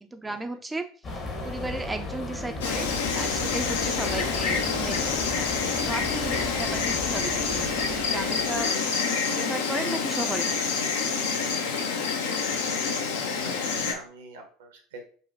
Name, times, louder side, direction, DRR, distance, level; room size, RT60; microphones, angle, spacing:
voice 1, 0.0-0.9 1.4-2.9 3.1-5.5 5.8-8.7 9.3-10.5 10.9-11.0, right 2 dB, 10° right, 6 dB, 0.3 m, -35 dB
sound 1, 1.0-8.7, left 2 dB, 40° left, 0.9 m, -36 dB
Insect, 2.6-13.9, left 5 dB, 70° left, 0.4 m, -27 dB
voice 2, 13.2-15.1, right 3 dB, 70° right, 4 dB, 0.7 m, -45 dB
5.0 x 2.1 x 2.6 m, 0.43 s
figure-of-eight pair, 70°, 0 cm